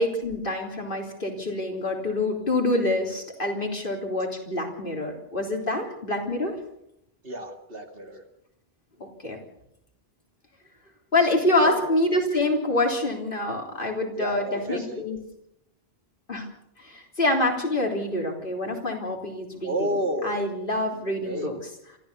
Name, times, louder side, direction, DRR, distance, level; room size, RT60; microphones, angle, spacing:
voice 1, 0.0-6.6 9.0-9.4 11.1-15.2 16.3-16.4 16.8-19.9 20.2-21.6, left 2 dB, 60° left, 2 dB, 3.8 m, -26 dB
voice 2, 7.2-8.2 11.6-11.8 14.2-15.0 19.6-20.4 21.3-21.5, right 1 dB, 65° right, 5 dB, 2.6 m, -30 dB
27.5 x 13.5 x 6.9 m, 0.78 s
omnidirectional pair, 1.0 m